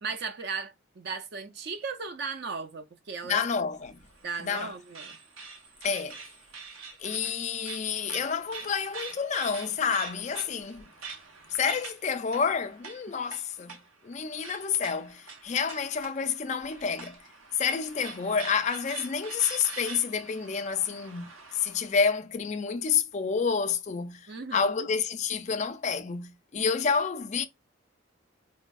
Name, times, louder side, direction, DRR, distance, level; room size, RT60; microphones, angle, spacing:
voice 1, 0.0-3.4 4.2-5.2 24.3-24.9, right 5 dB, 50° right, 0.4 m, -36 dB
voice 2, 3.2-4.0 4.4-4.7 5.8-6.2 7.0-10.8 11.5-13.8 14.0-17.2 17.6-27.5, left 6 dB, 35° left, 0.3 m, -29 dB
sound 1, 3.7-21.9, right 5 dB, 75° right, 0.8 m, -45 dB
4.1 x 2.6 x 2.2 m
head